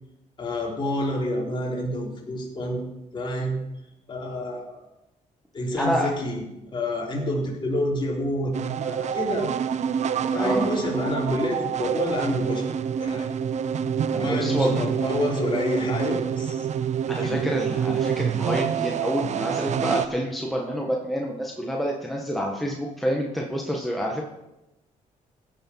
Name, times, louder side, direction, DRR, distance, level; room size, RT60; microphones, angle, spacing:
voice 1, 0.4-2.8 3.1-3.6 4.1-4.8 5.5-6.5 6.7-8.5 8.8-9.5 10.3-12.7 13.0-13.3 14.2-16.7 17.2-17.4, left 1 dB, 35° left, -2 dB, 3.8 m, -28 dB
voice 2, 5.8-6.1 10.3-10.7 14.1-14.9 17.1-24.2, equal, ahead, -1 dB, 1.7 m, -28 dB
sound 1, 8.5-20.1, right 8 dB, 60° right, 0.7 m, -27 dB
16.0 x 6.8 x 5.7 m, 0.93 s
cardioid pair, 105°, 14 cm